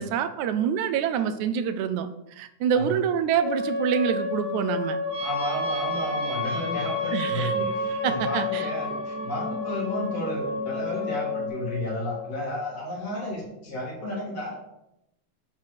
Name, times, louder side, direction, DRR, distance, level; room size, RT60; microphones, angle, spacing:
voice 1, 0.0-2.1 2.4-5.0 7.1-7.5 8.0-8.7, right 8 dB, 80° right, 10 dB, 2.0 m, -26 dB
sound 1, 3.4-12.4, left 2 dB, 25° right, 1.9 m, -31 dB
sound 2, 5.0-11.5, left 1 dB, 55° right, 1.1 m, -34 dB
voice 2, 5.2-14.7, left 1 dB, 55° left, -4 dB, 4.0 m, -32 dB
9.5 x 4.5 x 6.4 m, 0.84 s
omnidirectional pair, 3.5 m